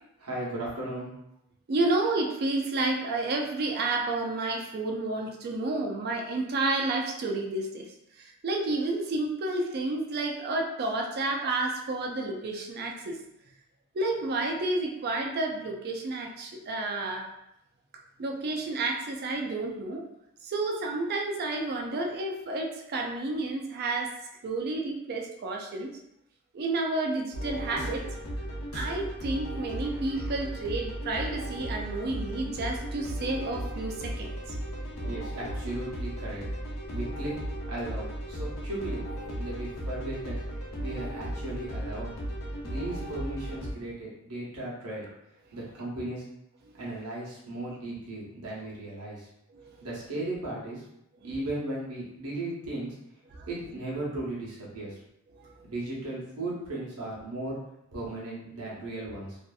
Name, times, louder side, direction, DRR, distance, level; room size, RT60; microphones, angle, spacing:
voice 1, 0.2-1.1 35.0-36.4 36.9-37.3 37.6-39.0 39.3-40.4 40.8-42.2 42.6-45.1 45.5-46.2 46.8-49.3 49.8-50.8 51.2-52.9 53.5-54.9 55.6-57.6 57.9-59.4, right 2 dB, 85° right, -6 dB, 0.9 m, -36 dB
voice 2, 1.7-7.9 8.2-13.2 13.9-17.3 18.2-20.0 20.4-24.1 24.4-26.0 26.5-28.0 28.7-34.3 49.5-49.9 53.3-53.5 55.3-55.7, right 2 dB, 45° right, 2 dB, 0.4 m, -30 dB
sound 1, 27.3-43.7, equal, 70° left, 0.7 m, -35 dB
2.6 x 2.4 x 2.3 m, 0.82 s
head